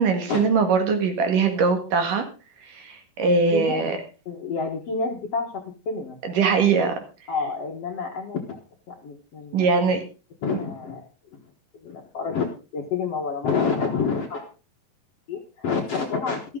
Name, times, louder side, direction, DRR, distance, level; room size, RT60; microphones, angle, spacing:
voice 1, 0.0-2.3 2.7-4.0 6.2-7.0 9.5-10.0, right 5 dB, 60° right, 6 dB, 3.2 m, -21 dB
voice 2, 3.5-3.9 4.3-6.2 7.3-8.6 8.9-9.7 10.4-11.0 11.7-14.5 15.3-16.4, left 5 dB, 55° left, 2 dB, 2.0 m, -28 dB
13.5 x 13.5 x 3.8 m, 0.33 s
omnidirectional pair, 4.4 m